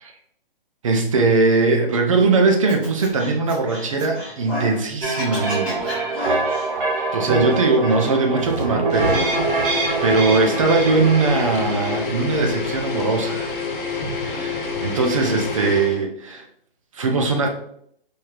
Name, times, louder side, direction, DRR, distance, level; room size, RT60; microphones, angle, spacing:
voice 1, 0.8-6.4 7.1-13.5 14.2-16.4 16.9-17.5, right 3 dB, 35° right, 4 dB, 0.6 m, -20 dB
Scratching (performance technique), 2.7-4.8 5.1-6.7, equal, 5° right, 0.8 m, -32 dB
sound 1, 5.0-12.0, right 3 dB, 60° right, 1.4 m, -25 dB
sound 2, 8.9-16.0, left 4 dB, 60° left, 1.1 m, -27 dB
4.5 x 3.2 x 2.4 m, 0.69 s
hypercardioid pair, 160°, 29 cm